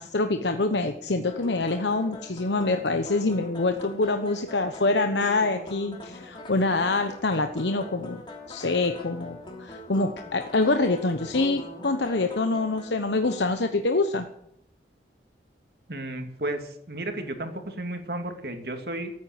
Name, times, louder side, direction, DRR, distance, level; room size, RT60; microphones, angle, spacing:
voice 1, 0.0-8.2 8.5-14.3, left 3 dB, 80° left, 7 dB, 1.0 m, -25 dB
sound 1, 1.2-13.5, left 2 dB, 25° left, 2.9 m, -42 dB
voice 2, 15.9-19.1, right 1 dB, 60° right, 5 dB, 2.4 m, -33 dB
14.0 x 9.3 x 9.1 m, 0.75 s
head